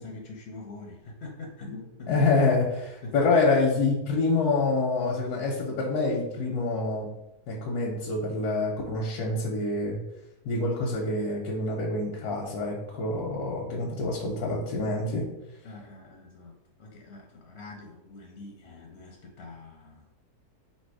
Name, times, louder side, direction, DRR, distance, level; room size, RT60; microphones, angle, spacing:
voice 1, 0.0-2.1 3.0-3.2 15.6-20.0, left 3 dB, 60° left, 1 dB, 0.7 m, -44 dB
voice 2, 2.1-7.1 7.5-10.0 10.5-15.2, left 3 dB, 85° left, -2 dB, 1.2 m, -26 dB
3.3 x 2.7 x 4.6 m, 0.90 s
omnidirectional pair, 1.6 m